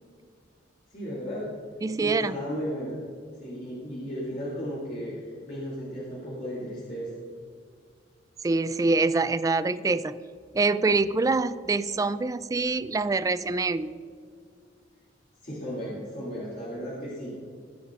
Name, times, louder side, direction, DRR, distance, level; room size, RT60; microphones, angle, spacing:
voice 1, 0.9-1.5 2.0-2.9 3.4-5.1 5.5-7.1 15.4-17.3, equal, 50° left, -7 dB, 2.6 m, -34 dB
voice 2, 1.8-2.4 8.4-10.2 10.5-13.9, right 3 dB, 20° right, 14 dB, 0.3 m, -25 dB
19.0 x 9.2 x 2.5 m, 2.2 s
head